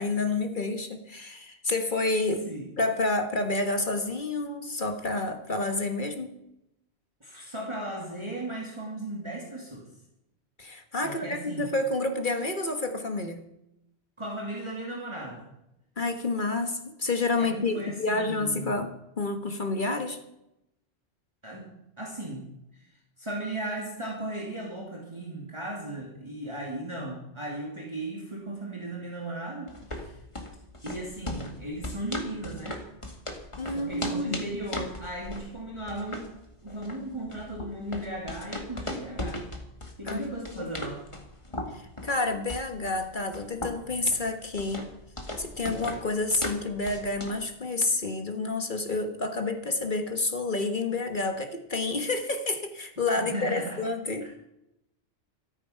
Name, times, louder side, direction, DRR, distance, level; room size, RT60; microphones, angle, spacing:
voice 1, 0.0-2.5 2.8-6.3 10.6-13.4 16.0-20.2 33.6-34.4 40.0-40.6 41.7-44.9 45.4-54.3, left 2 dB, 45° left, 6 dB, 1.6 m, -29 dB
voice 2, 7.2-9.9 11.0-11.7 14.2-15.5 17.4-18.8 21.4-21.7 22.0-22.4 23.2-30.2 30.8-32.8 33.7-36.3 36.6-39.4 40.0-41.0 53.2-53.8 54.2-54.3, right 1 dB, 25° right, -2 dB, 2.8 m, -36 dB
sound 1, 29.7-47.5, left 1 dB, 25° left, 2.0 m, -38 dB
13.5 x 13.5 x 5.7 m, 0.86 s
omnidirectional pair, 1.1 m